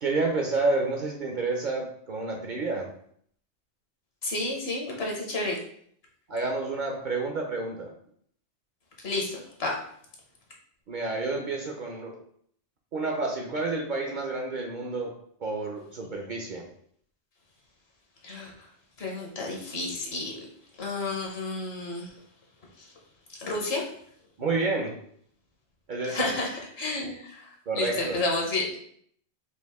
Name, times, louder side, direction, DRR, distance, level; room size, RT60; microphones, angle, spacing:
voice 1, 0.0-2.9 6.3-7.9 10.9-12.2 12.9-15.1 15.4-16.7 24.4-24.9 25.9-26.3 27.7-28.2, right 3 dB, 55° right, 1 dB, 0.6 m, -29 dB
voice 2, 4.2-5.6 9.0-9.8 18.2-18.7 19.0-20.4 20.7-22.2 22.8-22.9 23.4-23.9 26.1-28.8, left 2 dB, 65° left, -1 dB, 1.2 m, -31 dB
4.6 x 2.5 x 3.5 m, 0.64 s
omnidirectional pair, 1.2 m